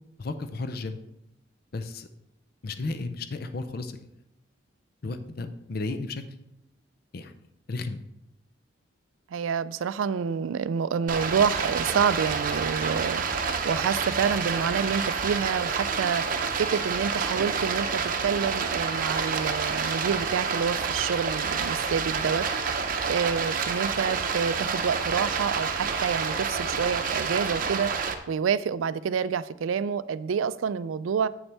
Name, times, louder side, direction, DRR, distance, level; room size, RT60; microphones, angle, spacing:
voice 1, 0.2-1.0 1.7-2.1 2.6-4.0 5.0-6.2 7.1-7.3 7.7-8.0, left 3 dB, 50° left, 10 dB, 0.5 m, -33 dB
voice 2, 9.3-31.3, right 6 dB, 85° right, 16 dB, 0.4 m, -28 dB
Stream, 11.1-28.1, right 5 dB, 45° right, 0.7 m, -28 dB
8.7 x 7.0 x 3.4 m, 0.83 s
head